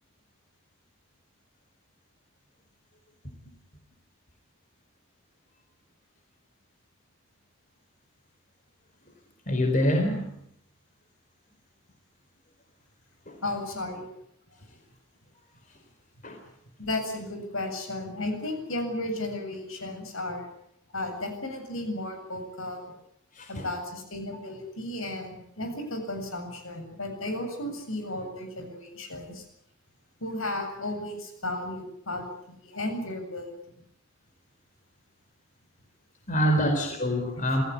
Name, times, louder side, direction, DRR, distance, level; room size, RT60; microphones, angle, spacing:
voice 1, 9.5-10.4 13.3-13.4 16.2-16.4 23.3-23.6 36.3-37.6, equal, 35° left, 4 dB, 4.2 m, -25 dB
voice 2, 13.4-14.1 16.8-20.5 20.9-22.9 23.5-29.4 30.2-33.5, left 1 dB, 70° left, 6 dB, 7.8 m, -34 dB
27.5 x 17.0 x 9.8 m, 0.72 s
head